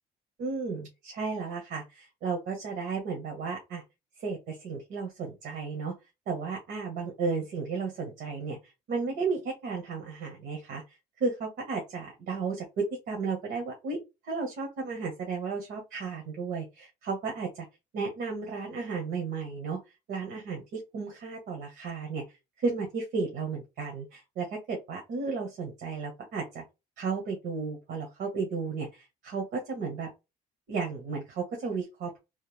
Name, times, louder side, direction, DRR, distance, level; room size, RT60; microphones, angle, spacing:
voice 1, 0.4-3.8 4.2-5.9 6.3-8.6 8.9-10.8 11.2-14.0 14.2-17.6 17.9-19.8 20.1-22.2 22.6-26.6 27.0-30.1 30.7-32.1, right 4 dB, 75° right, 1 dB, 1.4 m, -33 dB
3.4 x 2.6 x 3.4 m, 0.24 s
cardioid pair, 110°, 17 cm